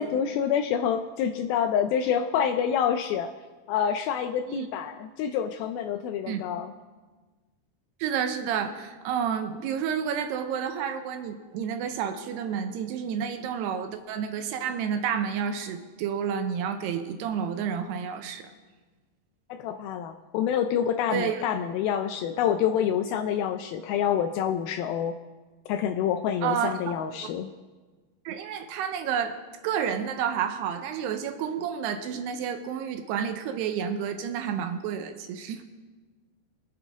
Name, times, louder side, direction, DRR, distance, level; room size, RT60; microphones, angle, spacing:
voice 1, 0.0-3.3 3.7-6.7 19.5-25.2 25.7-27.5, left 8 dB, 85° left, 7 dB, 2.1 m, -27 dB
voice 2, 8.0-18.5 21.1-21.4 26.4-27.0 28.3-29.4 29.6-35.6, right 8 dB, 80° right, 7 dB, 2.8 m, -30 dB
25.0 x 8.5 x 3.6 m, 1.3 s
omnidirectional pair, 4.8 m